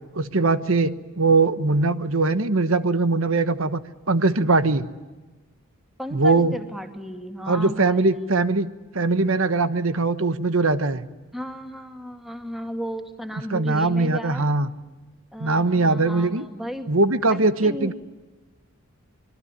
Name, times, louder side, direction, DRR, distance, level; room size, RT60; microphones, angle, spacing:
voice 1, 0.1-3.8 4.1-4.9 6.1-6.5 7.5-8.7 8.9-11.0 13.5-14.7 15.4-16.5 16.9-17.9, right 3 dB, 70° right, 12 dB, 1.2 m, -21 dB
voice 2, 6.0-8.5 11.3-14.5 15.3-16.9 17.3-17.9, equal, ahead, 4 dB, 2.2 m, -34 dB
26.0 x 22.5 x 9.8 m, 1.2 s
head